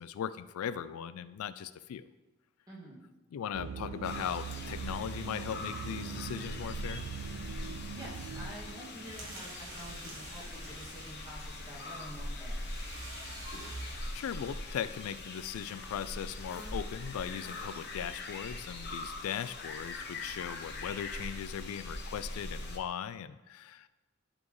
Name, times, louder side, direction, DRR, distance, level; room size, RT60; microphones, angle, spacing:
voice 1, 0.0-2.0 3.3-7.0 13.6-13.8 14.1-23.9, left 8 dB, 85° left, 15 dB, 0.3 m, -39 dB
voice 2, 2.7-3.0 7.9-12.7, equal, 20° right, -6 dB, 1.9 m, -48 dB
sound 1, 3.5-9.0, right 6 dB, 90° right, 0.4 m, -42 dB
sound 2, 4.0-22.8, left 2 dB, 50° left, 0.9 m, -42 dB
sound 3, 8.0-14.6, right 2 dB, 65° right, 1.2 m, -48 dB
11.5 x 4.3 x 3.1 m, 1.1 s
head